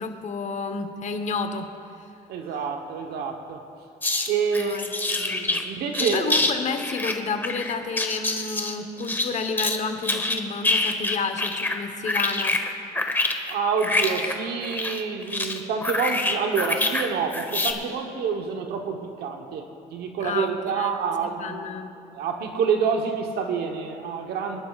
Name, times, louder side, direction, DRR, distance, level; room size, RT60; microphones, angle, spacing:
voice 1, 0.0-1.7 4.5-5.5 6.0-12.6 20.2-21.0 21.4-21.9, left 4 dB, 45° left, 7 dB, 1.1 m, -31 dB
voice 2, 2.3-3.6 4.3-4.7 5.1-6.4 13.5-19.7 19.9-21.7 22.1-24.6, right 6 dB, 70° right, 4 dB, 1.0 m, -27 dB
sound 1, 4.0-4.3 4.5-5.6 5.9-6.5 6.8-9.8 10.0-11.8 12.0-17.1 17.3-17.7, left 2 dB, 10° left, 1.1 m, -26 dB
23.5 x 11.0 x 2.4 m, 2.6 s
cardioid pair, 110°, 17 cm